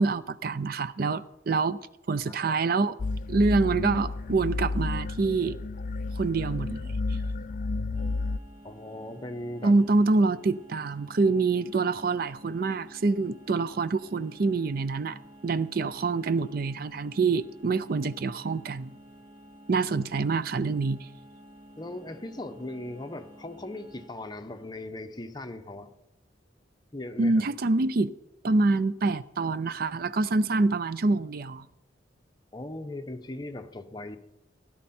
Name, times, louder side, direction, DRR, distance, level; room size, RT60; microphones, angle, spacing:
voice 1, 0.0-1.8 2.1-3.0 3.3-5.6 6.2-7.0 9.6-18.9 19.7-21.1 27.2-28.1 28.4-31.7, right 3 dB, 55° right, 0.5 m, -26 dB
voice 2, 2.1-2.6 8.6-9.7 21.8-25.9 26.9-27.4 32.5-34.2, left 1 dB, 25° left, 0.9 m, -39 dB
sound 1, 3.0-8.4, left 3 dB, 45° left, 0.4 m, -31 dB
sound 2, 7.9-24.1, equal, 30° right, 1.5 m, -51 dB
16.5 x 11.0 x 4.3 m
head